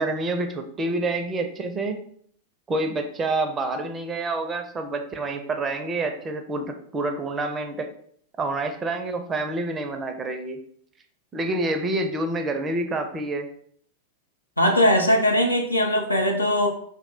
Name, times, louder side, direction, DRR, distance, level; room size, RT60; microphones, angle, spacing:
voice 1, 0.0-2.0 2.7-7.9 8.4-10.6 11.3-13.5, right 2 dB, 20° right, 5 dB, 0.4 m, -27 dB
voice 2, 14.6-16.7, left 1 dB, 85° left, 2 dB, 0.5 m, -20 dB
2.6 x 2.1 x 4.0 m, 0.63 s
figure-of-eight pair, 90°, 0 cm